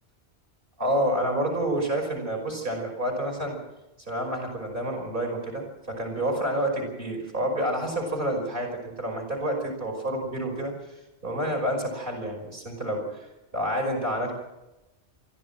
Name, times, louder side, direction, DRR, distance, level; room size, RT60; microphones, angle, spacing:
voice 1, 0.8-3.6 4.1-10.7 11.2-13.3 13.5-14.3, right 1 dB, 50° right, 0 dB, 5.9 m, -28 dB
24.0 x 14.5 x 7.5 m, 1.0 s
omnidirectional pair, 1.2 m